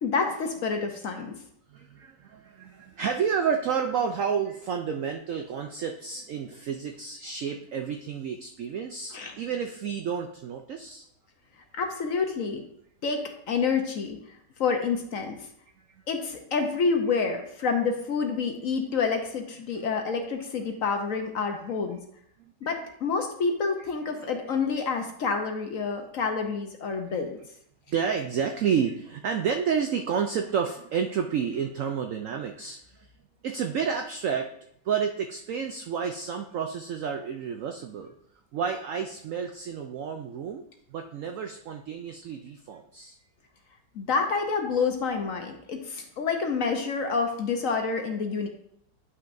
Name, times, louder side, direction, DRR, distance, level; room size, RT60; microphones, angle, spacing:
voice 1, 0.0-1.3 9.1-9.4 11.7-12.6 13.0-15.5 16.1-22.0 22.6-27.4 43.9-48.5, left 5 dB, 60° left, 4 dB, 1.0 m, -28 dB
voice 2, 1.7-11.1 19.7-19.8 24.1-24.2 27.1-27.2 27.9-33.1 33.4-34.5 34.8-38.1 38.5-40.6 40.9-43.2, right 7 dB, 80° right, 5 dB, 0.7 m, -30 dB
9.5 x 5.8 x 2.6 m, 0.71 s
omnidirectional pair, 1.9 m